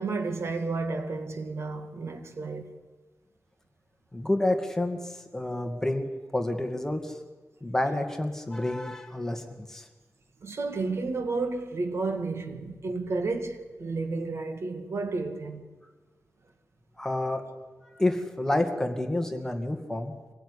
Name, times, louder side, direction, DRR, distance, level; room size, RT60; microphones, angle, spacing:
voice 1, 0.0-2.8 10.4-15.6, right 3 dB, 55° right, 2.3 m, -31 dB
voice 2, 4.1-5.0 5.3-6.1 6.3-7.2 7.6-9.8 17.0-17.4 18.0-20.1, left 1 dB, 10° left, 2.2 m, -29 dB
25.0 x 16.5 x 10.0 m
wide cardioid pair, 145°, 5 cm